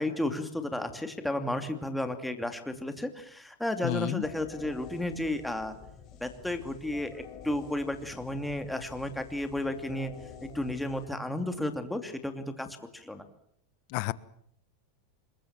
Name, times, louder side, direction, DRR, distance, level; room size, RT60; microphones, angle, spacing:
voice 1, 0.0-5.7 6.2-10.1 10.4-12.7 12.9-13.2, left 1 dB, 5° left, 7 dB, 2.7 m, -33 dB
voice 2, 3.8-4.2 13.9-14.1, left 20 dB, 55° left, 18 dB, 1.2 m, -30 dB
sound 1, 4.2-11.9, left 8 dB, 40° left, 5.0 m, -49 dB
26.0 x 22.0 x 7.5 m, 0.68 s
supercardioid pair, 135°, 0 cm